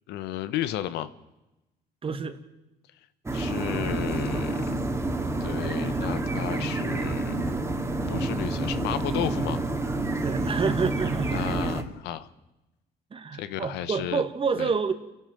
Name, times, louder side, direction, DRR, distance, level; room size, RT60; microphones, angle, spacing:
voice 1, 0.1-1.1 3.3-4.6 5.4-7.5 8.1-9.6 11.3-12.3 13.4-14.2 14.6-14.7, left 12 dB, 85° left, 13 dB, 1.1 m, -33 dB
voice 2, 2.0-2.4 10.2-11.6 13.1-14.9, right 5 dB, 30° right, 10 dB, 1.8 m, -28 dB
sound 1, 3.3-11.8, right 2 dB, 15° right, 2.4 m, -28 dB
29.0 x 11.5 x 7.7 m, 0.98 s
cardioid pair, 110°, 17 cm